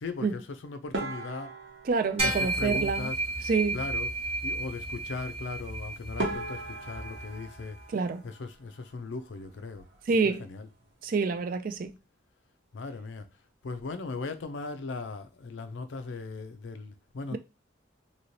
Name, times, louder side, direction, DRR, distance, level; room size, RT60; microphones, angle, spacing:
voice 1, 0.0-1.6 2.2-3.2 3.7-4.1 4.4-7.8 8.2-9.9 10.2-10.7 12.7-13.3 13.6-17.4, left 3 dB, 75° left, 0.5 m, -38 dB
sound 1, 0.9-3.4 5.7-5.8 6.2-9.0 9.2-10.0 10.3-10.5 10.8-10.9 11.5-11.9, right 2 dB, 65° right, 1.0 m, -39 dB
voice 2, 1.9-3.1 3.4-3.8 7.9-8.2 10.1-10.5 11.0-11.9 17.3-17.4, right 4 dB, 45° right, 0.3 m, -27 dB
sound 2, 2.2-7.8, right 2 dB, 30° right, 1.0 m, -33 dB
3.0 x 2.9 x 2.7 m
head